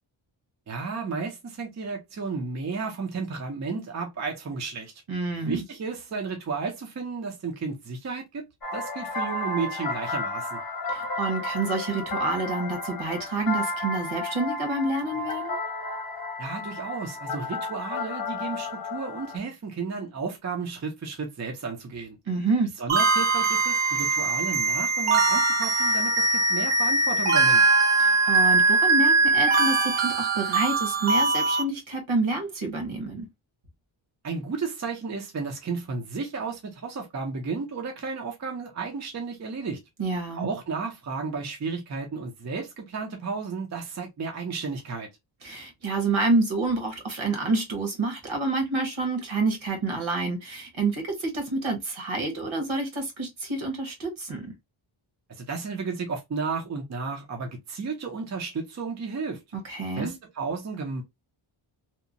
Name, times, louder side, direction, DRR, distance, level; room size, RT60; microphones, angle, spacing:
voice 1, 0.7-4.9 5.5-8.4 8.7-10.6 16.4-22.2 22.8-27.6 34.2-39.8 40.3-45.1 55.3-59.4 59.9-61.0, right 4 dB, 35° right, 0.6 m, -33 dB
voice 2, 5.1-5.6 10.9-15.6 22.3-22.7 28.0-33.2 40.0-40.5 45.4-54.5 59.5-60.1, right 3 dB, 70° right, 1.2 m, -28 dB
sound 1, 8.6-19.4, left 2 dB, 45° left, 0.7 m, -32 dB
sound 2, 22.9-31.6, right 3 dB, 90° right, 0.8 m, -22 dB
2.8 x 2.1 x 2.5 m
wide cardioid pair, 170°, 50 cm